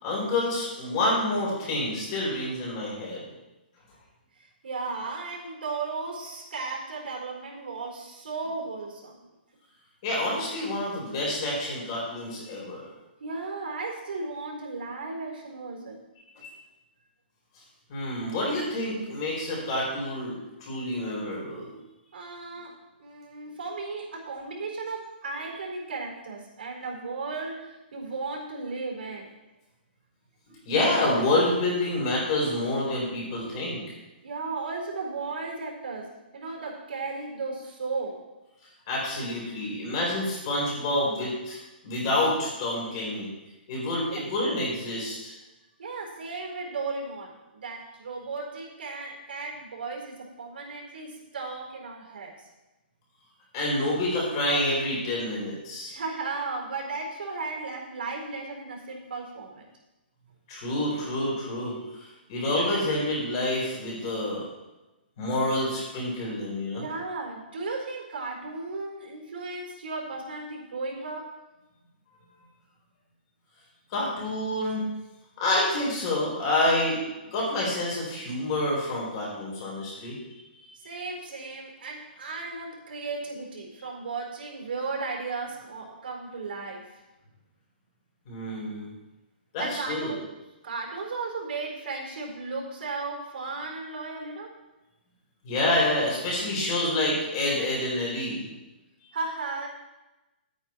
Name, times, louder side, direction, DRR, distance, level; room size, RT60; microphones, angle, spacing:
voice 1, 0.0-3.2 10.0-12.9 16.4-16.5 17.9-21.8 30.5-33.8 38.9-41.6 41.8-43.3 43.7-45.3 53.5-55.9 60.5-62.0 62.3-64.4 65.2-66.8 73.9-74.9 75.4-80.1 88.3-88.9 89.5-90.1 95.4-98.5, left 1 dB, 25° left, -4 dB, 4.3 m, -28 dB
voice 2, 4.4-9.2 13.2-16.0 22.1-29.3 34.2-38.2 44.1-44.2 45.8-52.3 55.9-59.7 66.8-71.3 80.7-87.0 89.6-90.2 90.6-94.5 99.1-99.7, right 3 dB, 70° right, 0 dB, 4.4 m, -35 dB
12.0 x 9.4 x 4.5 m, 1.0 s
hypercardioid pair, 180°, 6 cm